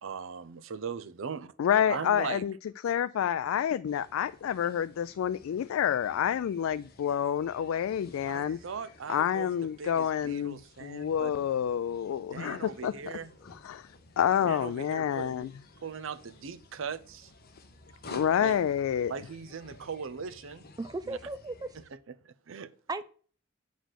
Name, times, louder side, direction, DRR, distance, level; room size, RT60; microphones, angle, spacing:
voice 1, 0.0-1.5 1.9-2.4 8.3-11.3 12.3-13.3 14.4-15.5 15.8-17.3 18.1-18.6 19.1-20.7 21.1-21.2 21.7-21.8 22.2-22.7, right 6 dB, 70° right, 0.6 m, -39 dB
voice 2, 1.6-2.5 2.8-8.6 9.1-12.9 13.6-13.9 14.2-15.5 18.1-19.1, left 9 dB, 90° left, 0.3 m, -28 dB
sound 1, 3.9-21.9, left 2 dB, 50° left, 1.1 m, -54 dB
voice 3, 20.8-21.8 22.9-23.0, right 3 dB, 20° right, 0.4 m, -36 dB
8.1 x 4.0 x 6.4 m
head